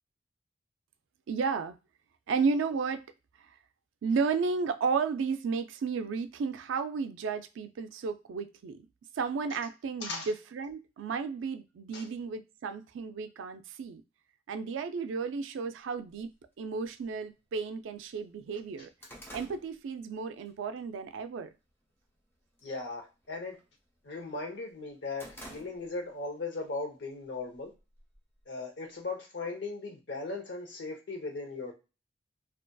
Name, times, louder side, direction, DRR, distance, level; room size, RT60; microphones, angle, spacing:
voice 1, 1.3-1.7 2.3-3.0 4.0-8.9 9.2-14.0 14.5-16.3 16.6-18.9 19.3-21.5, right 5 dB, 90° right, 10 dB, 0.3 m, -33 dB
sound 1, 16.1-16.2 17.1-17.2 17.7-17.8 18.1-20.5 20.9-21.2 21.7-22.2 22.5-22.8 23.1-24.3 24.7-26.2 26.5-26.6 27.5-28.4, equal, 10° left, 0.5 m, -50 dB
voice 2, 22.6-23.6 24.0-27.7 28.5-31.7, left 3 dB, 70° left, 1 dB, 0.8 m, -38 dB
2.5 x 2.3 x 2.2 m, 0.29 s
head